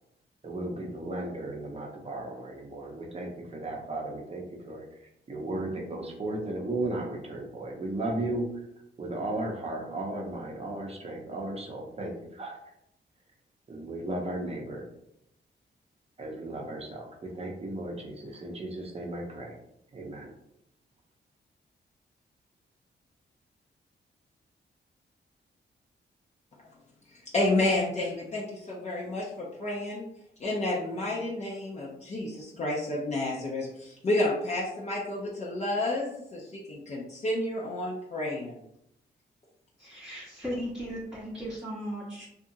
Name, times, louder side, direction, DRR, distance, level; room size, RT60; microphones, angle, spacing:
voice 1, 0.4-4.8 5.3-8.7 9.0-12.6 13.7-14.8 16.2-19.6 19.9-20.3, right 2 dB, 35° right, 0 dB, 0.7 m, -35 dB
voice 2, 27.3-30.0 30.4-38.6, left 2 dB, 35° left, -5 dB, 0.6 m, -30 dB
voice 3, 39.8-42.3, equal, 5° right, -9 dB, 0.8 m, -36 dB
2.8 x 2.4 x 2.6 m, 0.79 s
cardioid pair, 100°, 19 cm